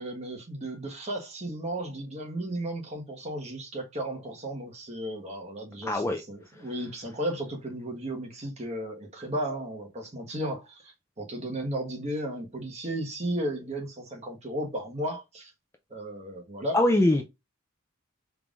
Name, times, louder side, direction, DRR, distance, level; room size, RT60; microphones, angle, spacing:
voice 1, 0.0-15.5 15.9-16.8, right 1 dB, 30° right, 1.3 m, -34 dB
voice 2, 5.9-6.2 16.7-17.2, left 1 dB, 15° left, 0.5 m, -22 dB
4.5 x 3.6 x 2.5 m
head